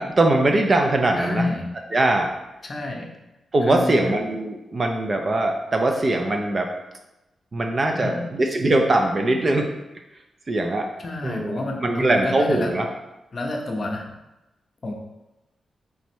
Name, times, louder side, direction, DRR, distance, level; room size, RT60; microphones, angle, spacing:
voice 1, 0.0-1.4 1.9-2.3 3.5-6.7 7.5-9.7 10.5-10.9 11.2-12.9, right 2 dB, 25° right, 3 dB, 0.4 m, -21 dB
voice 2, 1.2-1.6 2.6-3.1 3.7-4.1 7.9-8.3 11.0-12.7 13.3-14.1 14.8-14.9, left 2 dB, 35° left, 1 dB, 0.6 m, -29 dB
3.4 x 3.1 x 4.3 m, 0.97 s
wide cardioid pair, 175°, 0 cm